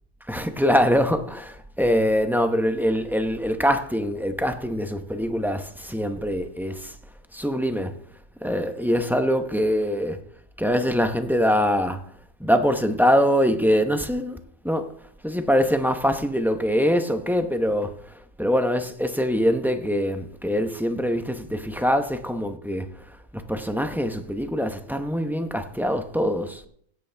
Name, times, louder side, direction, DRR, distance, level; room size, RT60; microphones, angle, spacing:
voice 1, 0.3-7.0 7.3-8.0 8.4-10.2 10.6-12.0 12.4-14.4 14.6-14.9 15.2-26.7, equal, ahead, 0.7 m, -23 dB
16.5 x 8.4 x 3.4 m
omnidirectional pair, 1.3 m